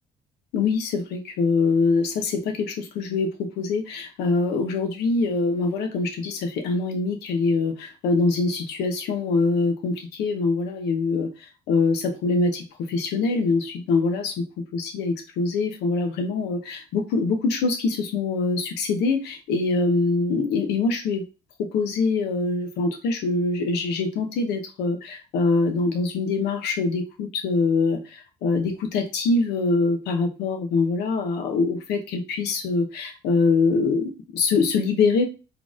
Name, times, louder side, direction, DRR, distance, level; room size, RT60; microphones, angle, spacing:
voice 1, 0.5-14.4 14.7-21.2 21.6-35.2, left 4 dB, 85° left, 6 dB, 1.1 m, -24 dB
4.1 x 3.4 x 3.7 m, 0.31 s
cardioid pair, 110°, 17 cm